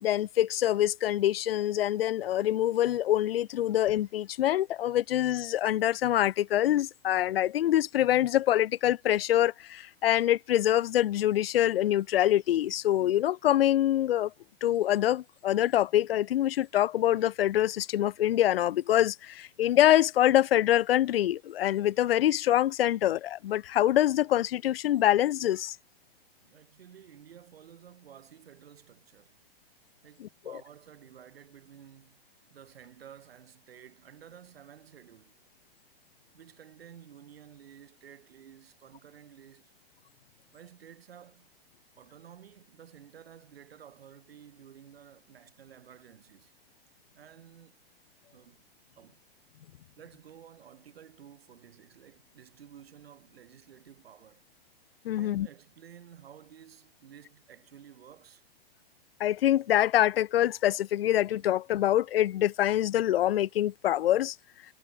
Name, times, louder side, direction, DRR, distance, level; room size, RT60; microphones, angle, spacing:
voice 1, 0.0-14.3 14.6-25.8 30.2-30.3 55.0-55.5 59.2-64.4, left 12 dB, 70° left, 0.7 m, -25 dB
voice 2, 26.4-29.4 30.0-35.3 36.3-39.7 40.5-41.5 42.0-46.5 47.1-47.9 48.3-48.6 49.0-49.2 50.0-54.4 55.1-58.4, right 9 dB, 75° right, 7.1 m, -53 dB
hypercardioid pair, 175°, 30 cm